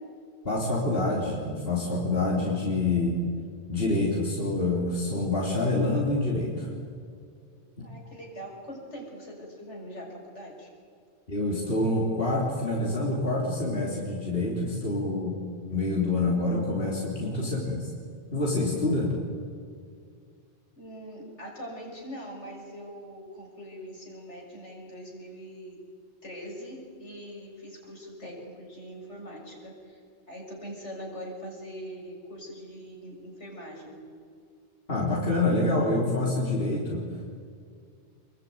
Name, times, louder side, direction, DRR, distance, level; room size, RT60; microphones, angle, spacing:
voice 1, 0.4-3.2 3.7-6.7 7.8-7.9 11.3-15.4 15.7-17.9 18.3-19.1 34.9-37.0, left 2 dB, 55° left, -3 dB, 3.7 m, -26 dB
voice 2, 7.8-10.7 20.8-25.8 26.2-30.0 30.3-34.0, equal, 80° left, -1 dB, 6.7 m, -42 dB
27.5 x 22.0 x 9.5 m, 2.2 s
omnidirectional pair, 1.2 m